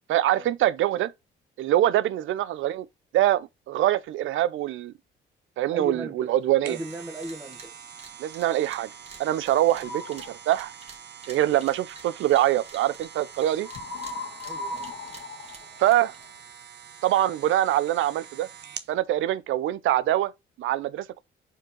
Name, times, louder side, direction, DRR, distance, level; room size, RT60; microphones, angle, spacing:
voice 1, 0.1-1.1 1.6-2.9 3.1-4.9 5.6-6.8 8.2-8.9 9.2-10.7 11.3-13.7 15.8-16.1 17.0-18.5 18.9-20.3 20.6-21.2, right 13 dB, 80° right, 0.6 m, -24 dB
voice 2, 5.7-6.3 6.6-7.7 14.4-14.9, right 1 dB, 10° right, 1.6 m, -37 dB
sound 1, 6.4-18.9 19.4-19.5, right 8 dB, 60° right, 0.9 m, -45 dB
sound 2, 6.8-7.0 7.2-7.7 8.0-13.5 13.7-16.3, right 4 dB, 30° right, 1.9 m, -48 dB
sound 3, 9.8-10.3 13.6-16.4, left 2 dB, 70° left, 1.5 m, -37 dB
5.0 x 4.5 x 4.5 m
cardioid pair, 90°, 20 cm